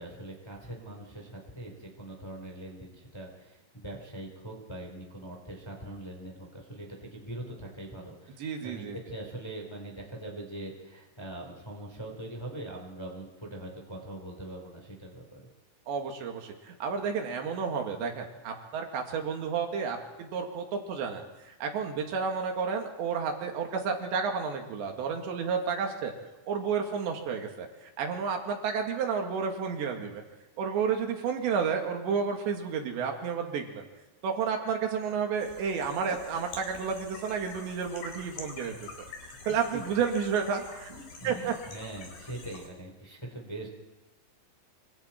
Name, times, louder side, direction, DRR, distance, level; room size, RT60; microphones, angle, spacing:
voice 1, 0.0-15.5 39.7-39.8 40.9-43.7, right 1 dB, 5° left, 0 dB, 3.4 m, -42 dB
voice 2, 8.4-9.0 15.9-26.1 26.5-30.2 30.6-33.8 34.2-38.8 39.5-40.9 41.2-41.5, right 6 dB, 75° right, 3 dB, 4.4 m, -31 dB
sound 1, 35.4-42.7, left 4 dB, 60° left, 5.3 m, -46 dB
26.0 x 26.0 x 4.5 m, 1.1 s
omnidirectional pair, 5.1 m